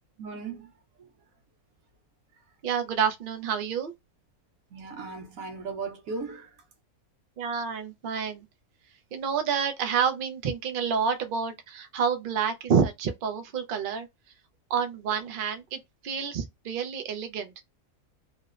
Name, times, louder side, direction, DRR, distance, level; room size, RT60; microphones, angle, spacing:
voice 1, 0.2-0.7 1.0-1.1 4.7-6.5, right 4 dB, 70° right, 1.2 m, -37 dB
voice 2, 2.6-3.9 7.4-8.5 9.1-14.1 14.7-17.6, right 6 dB, 85° right, 0.4 m, -28 dB
3.0 x 2.0 x 2.3 m
omnidirectional pair, 1.5 m